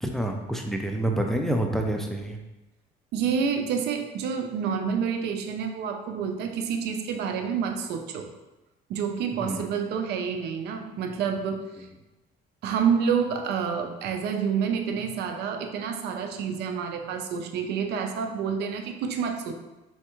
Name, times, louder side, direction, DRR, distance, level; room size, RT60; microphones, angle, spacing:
voice 1, 0.0-2.4 9.4-9.7, right 1 dB, ahead, 3 dB, 0.4 m, -28 dB
voice 2, 3.1-8.3 8.9-11.6 12.6-19.5, right 6 dB, 75° right, 5 dB, 0.6 m, -28 dB
4.4 x 3.5 x 3.0 m, 1.0 s
cardioid pair, 110°, 17 cm